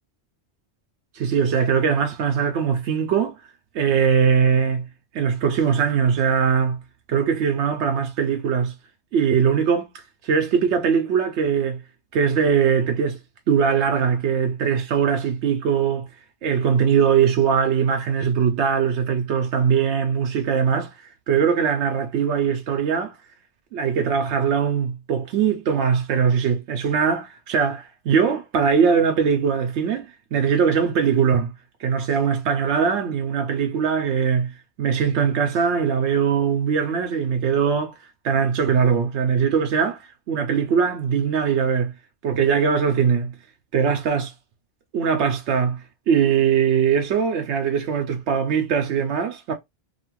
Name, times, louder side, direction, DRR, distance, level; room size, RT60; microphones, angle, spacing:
voice 1, 1.1-3.4 3.7-4.9 5.1-6.8 7.1-8.7 9.1-9.9 10.2-11.8 12.1-13.2 13.5-16.1 16.4-23.1 23.7-31.5 31.8-37.9 38.2-40.0 40.3-41.9 42.2-43.3 43.7-44.3 44.9-49.5, right 7 dB, 85° right, 0.9 m, -21 dB
2.7 x 2.4 x 2.9 m
omnidirectional pair, 1.1 m